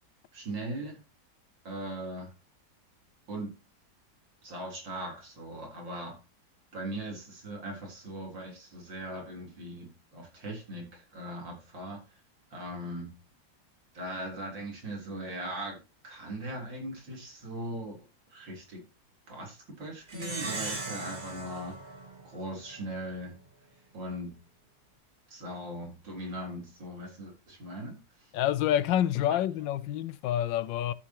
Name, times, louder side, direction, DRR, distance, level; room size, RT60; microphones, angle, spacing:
voice 1, 0.3-1.0 1.6-2.3 3.3-3.5 4.4-6.2 6.7-12.0 12.5-13.1 13.9-15.8 16.0-18.0 18.3-18.8 19.3-21.8 22.2-23.4 23.9-24.3 25.3-28.0 29.3-29.4, right 1 dB, 85° right, 4.3 m, -39 dB
Plucked string instrument, 20.1-22.9, right 3 dB, 30° right, 1.5 m, -38 dB
voice 2, 28.3-30.9, left 11 dB, 85° left, 1.4 m, -27 dB
13.0 x 7.0 x 2.9 m
omnidirectional pair, 2.0 m